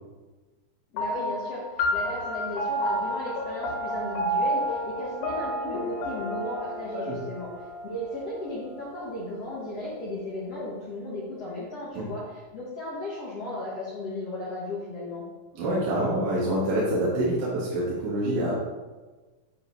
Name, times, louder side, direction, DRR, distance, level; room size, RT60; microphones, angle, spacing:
voice 1, 0.9-7.5 7.8-15.2, left 1 dB, 65° left, -7 dB, 1.5 m, -35 dB
sound 1, 1.0-9.8, equal, 85° left, 3.7 m, -31 dB
voice 2, 15.5-18.5, right 1 dB, 80° right, -7 dB, 3.9 m, -26 dB
9.9 x 5.2 x 4.5 m, 1.2 s
omnidirectional pair, 5.2 m